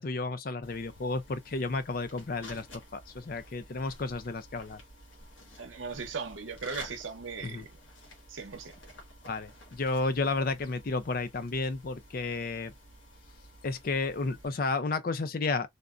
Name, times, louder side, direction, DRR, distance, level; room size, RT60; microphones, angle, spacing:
voice 1, 0.0-2.7 2.9-4.8 7.4-7.7 9.3-12.7 13.6-15.7, left 3 dB, 45° left, 0.5 m, -32 dB
sound 1, 0.6-14.5, left 1 dB, 85° left, 1.5 m, -52 dB
voice 2, 5.6-7.6 8.3-8.7, right 5 dB, 75° right, 0.8 m, -38 dB
3.6 x 2.1 x 2.4 m
head